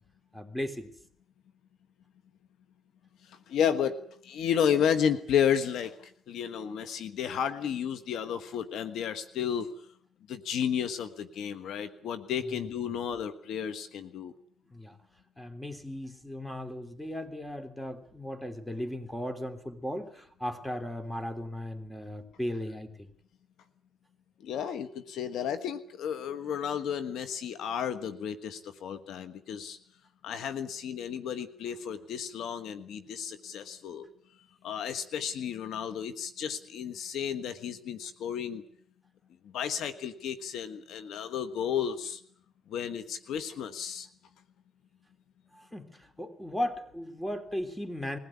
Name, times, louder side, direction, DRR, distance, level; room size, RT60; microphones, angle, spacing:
voice 1, 0.3-0.9 14.7-15.0 15.4-23.1 45.5-48.2, left 1 dB, 5° left, 8 dB, 3.1 m, -36 dB
voice 2, 3.5-4.0 4.2-6.0 6.3-9.7 10.3-14.3 24.4-29.8 30.2-34.1 34.6-38.6 39.5-42.2 42.7-44.1, left 8 dB, 75° left, 10 dB, 1.4 m, -32 dB
22.0 x 16.0 x 9.7 m, 0.64 s
cardioid pair, 90°, 0 cm